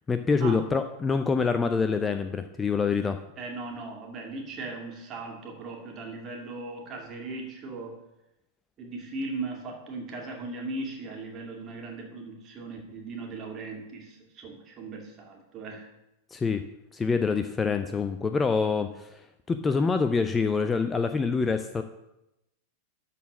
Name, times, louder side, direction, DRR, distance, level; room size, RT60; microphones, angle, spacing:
voice 1, 0.1-3.2 16.3-16.6 16.9-19.2 19.5-21.8, left 5 dB, 15° left, 9 dB, 0.5 m, -26 dB
voice 2, 3.4-8.0 8.8-15.9, right 3 dB, 30° right, 1 dB, 2.3 m, -38 dB
12.5 x 4.2 x 6.2 m, 0.90 s
figure-of-eight pair, 90°, 0 cm